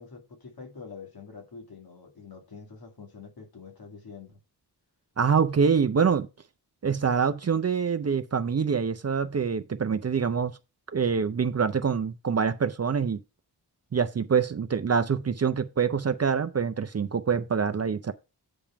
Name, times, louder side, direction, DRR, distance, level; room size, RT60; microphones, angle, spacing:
voice 1, 0.0-4.4, left 5 dB, 60° left, 2.3 m, -46 dB
voice 2, 5.2-6.3 6.8-10.6 10.9-13.2 13.9-18.1, right 6 dB, 40° right, 0.5 m, -25 dB
8.6 x 3.6 x 5.8 m
wide cardioid pair, 130°, 40 cm